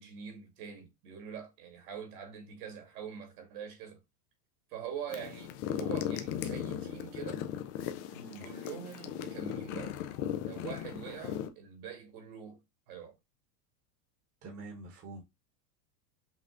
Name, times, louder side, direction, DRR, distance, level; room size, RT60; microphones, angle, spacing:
voice 1, 0.0-4.0 4.7-7.5 8.4-10.0 10.4-12.6 12.9-13.2, right 8 dB, 65° right, 2.2 m, -44 dB
sound 1, 5.1-11.5, left 10 dB, 30° left, 0.4 m, -37 dB
voice 2, 8.1-8.5 14.4-15.2, right 2 dB, 30° right, 1.2 m, -46 dB
5.6 x 2.3 x 3.7 m
supercardioid pair, 135°, 49 cm